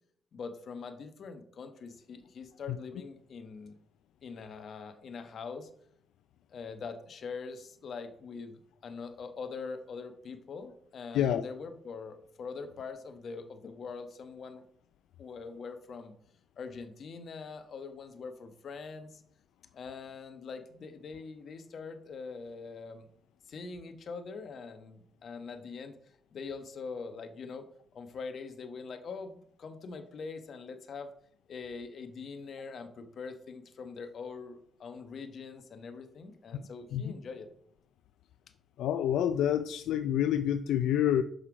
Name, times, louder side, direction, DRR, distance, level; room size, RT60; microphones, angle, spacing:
voice 1, 0.3-3.8 4.2-5.7 6.5-14.6 15.2-16.1 16.6-19.2 19.7-23.1 23.5-25.9 26.3-31.1 31.5-37.5, left 5 dB, 55° left, 8 dB, 1.1 m, -43 dB
voice 2, 36.5-37.1 38.8-41.2, left 10 dB, 85° left, 10 dB, 0.3 m, -28 dB
6.6 x 5.6 x 4.8 m, 0.67 s
cardioid pair, 90°, 0 cm